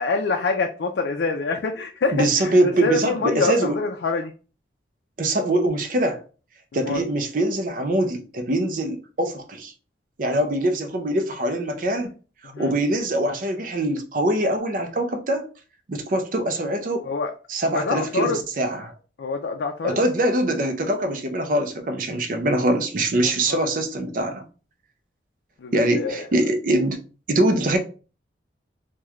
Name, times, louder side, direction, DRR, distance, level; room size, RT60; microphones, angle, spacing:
voice 1, 0.0-4.3 6.7-7.0 12.5-12.7 17.0-17.3 17.6-18.4 19.2-20.0 23.2-23.7 25.6-26.3, left 3 dB, 70° left, 0.4 m, -26 dB
voice 2, 2.1-3.8 5.2-6.2 6.7-9.7 10.2-12.1 12.4-15.4 15.9-17.0 17.5-18.9 19.8-24.5 25.7-27.0 27.3-27.8, right 1 dB, 45° right, 0.5 m, -23 dB
3.1 x 2.2 x 3.5 m
head